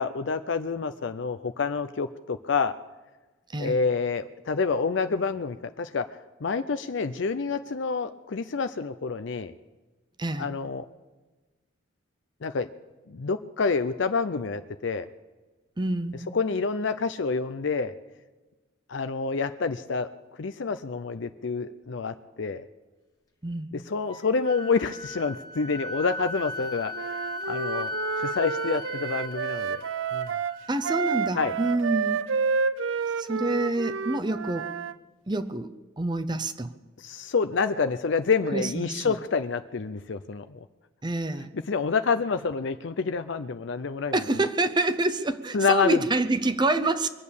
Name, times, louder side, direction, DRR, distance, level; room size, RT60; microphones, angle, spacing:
voice 1, 0.0-2.8 3.6-9.5 10.4-10.9 12.4-12.7 13.1-15.1 16.3-17.9 18.9-20.1 20.4-22.6 23.7-27.9 28.2-29.8 30.1-30.3 31.3-31.5 37.0-40.6 41.5-44.1 45.5-46.0, left 4 dB, 60° left, 10 dB, 0.5 m, -28 dB
voice 2, 15.8-16.2 23.4-23.7 30.7-32.3 33.2-34.7 35.3-35.7 36.0-36.7 38.5-39.1 41.0-41.5 44.1-47.1, right 2 dB, 20° right, 9 dB, 0.7 m, -27 dB
Wind instrument woodwind instrument, 24.1-31.8, left 1 dB, 15° left, 1.7 m, -37 dB
Wind instrument woodwind instrument 2, 26.9-34.9, right 5 dB, 70° right, 0.5 m, -29 dB
23.0 x 8.4 x 7.1 m, 1.2 s
head